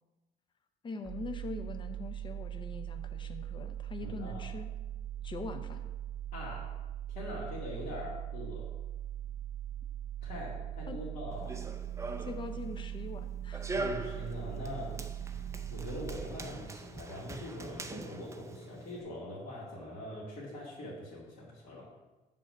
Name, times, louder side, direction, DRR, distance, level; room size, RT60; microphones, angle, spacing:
voice 1, 0.8-4.7 5.2-5.8 10.9-11.0 12.2-13.8, left 3 dB, 30° left, 7 dB, 0.7 m, -42 dB
sound 1, 1.0-16.8, right 11 dB, ahead, 1.4 m, -41 dB
voice 2, 4.0-4.5 6.3-6.7 7.1-8.7 10.2-11.5 13.7-15.0 15.7-21.9, left 1 dB, 60° left, -9 dB, 2.2 m, -42 dB
Run, 11.3-19.0, right 3 dB, 15° right, 0.5 m, -42 dB
6.7 x 4.0 x 6.3 m, 1.1 s
cardioid pair, 110°, 17 cm